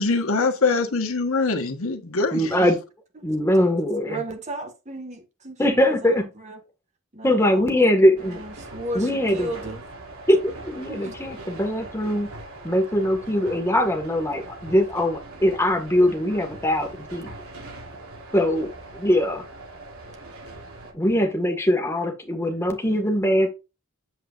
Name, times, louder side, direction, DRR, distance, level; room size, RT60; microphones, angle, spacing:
voice 1, 0.0-2.6, left 3 dB, 80° left, 1.3 m, -23 dB
voice 2, 2.3-2.8 3.2-4.2 5.6-6.2 7.2-8.4 8.9-9.5 10.3-12.3 12.6-17.3 18.3-19.4 20.9-23.5, equal, 10° left, 1.7 m, -22 dB
voice 3, 4.1-6.6 7.1-9.8 10.9-11.2, right 1 dB, 35° right, 1.8 m, -35 dB
sound 1, 8.2-20.9, right 2 dB, 90° right, 3.1 m, -41 dB
8.2 x 7.8 x 2.5 m
head